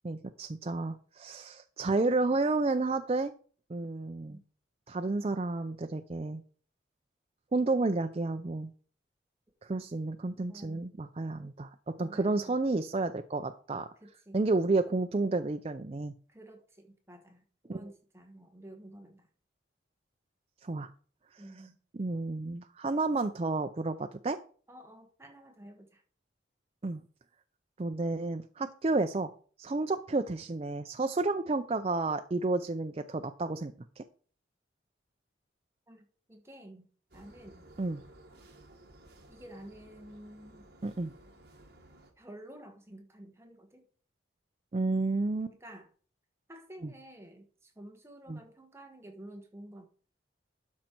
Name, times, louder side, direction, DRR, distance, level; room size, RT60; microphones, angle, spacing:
voice 1, 0.0-3.3 3.7-4.4 4.9-6.4 7.5-8.7 9.6-11.7 12.0-13.9 14.3-16.1 17.7-17.8 20.6-20.9 21.9-24.4 26.8-27.0 27.8-29.3 29.6-34.0 37.8-38.0 40.8-41.1 44.7-45.5 46.8-46.9 48.3-48.4, right 3 dB, 30° right, 7 dB, 0.4 m, -31 dB
voice 2, 10.5-10.9 12.0-12.6 14.0-14.4 16.3-19.3 21.4-21.8 24.7-26.0 35.9-36.9 37.1-37.7 39.3-40.6 42.2-43.8 45.5-45.9 46.5-49.9, right 1 dB, 15° right, 4 dB, 1.3 m, -51 dB
sound 1, 37.1-42.1, right 1 dB, 55° right, 1.6 m, -56 dB
12.0 x 5.3 x 4.5 m, 0.42 s
head